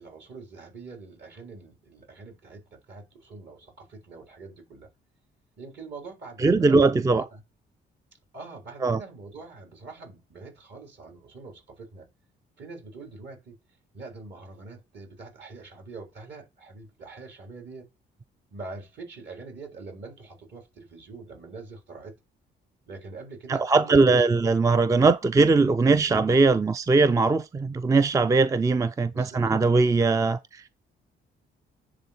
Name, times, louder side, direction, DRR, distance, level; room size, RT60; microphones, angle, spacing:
voice 1, 0.0-4.9 5.6-7.4 8.3-12.1 12.6-13.6 13.9-17.9 18.5-22.1 22.9-24.2 25.9-26.1 29.1-29.5, right 3 dB, 60° right, 3.8 m, -44 dB
voice 2, 6.4-7.2 8.8-9.0 23.5-30.6, right 3 dB, 15° right, 0.4 m, -20 dB
10.0 x 3.8 x 4.3 m
cardioid pair, 90°, 20 cm